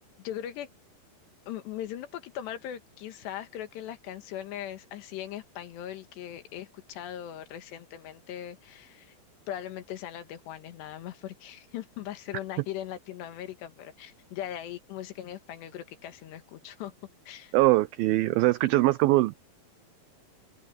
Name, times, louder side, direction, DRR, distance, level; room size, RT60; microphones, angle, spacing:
voice 1, 0.2-0.7 1.5-9.2 9.5-16.9 17.3-17.6, left 11 dB, 80° left, 3.7 m, -39 dB
voice 2, 17.5-19.4, right 18 dB, 85° right, 2.1 m, -22 dB
omnidirectional pair, 4.9 m